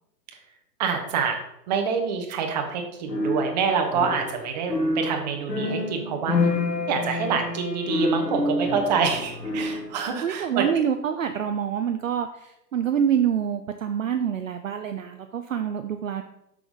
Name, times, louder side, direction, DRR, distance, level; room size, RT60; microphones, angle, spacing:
voice 1, 0.8-1.4 1.7-6.5 6.9-10.6, right 6 dB, 25° right, 4 dB, 1.0 m, -26 dB
sound 1, 3.1-10.0, left 2 dB, 85° left, 1.9 m, -27 dB
voice 2, 10.2-16.2, right 8 dB, 55° right, 7 dB, 0.5 m, -26 dB
6.8 x 6.1 x 3.7 m, 0.80 s
figure-of-eight pair, 125°, 50 cm